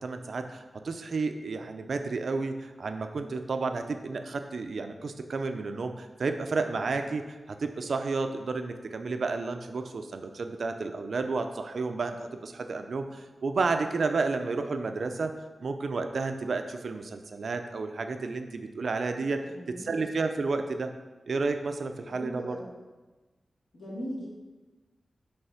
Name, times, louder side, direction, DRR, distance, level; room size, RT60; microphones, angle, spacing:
voice 1, 0.0-15.3 15.6-19.4 19.7-20.9 21.3-22.6, right 3 dB, 65° right, 7 dB, 0.4 m, -31 dB
voice 2, 19.5-20.1 22.1-22.7 23.7-24.3, equal, 70° left, -6 dB, 2.1 m, -39 dB
5.5 x 3.4 x 5.7 m, 1.2 s
wide cardioid pair, 145°, 0 cm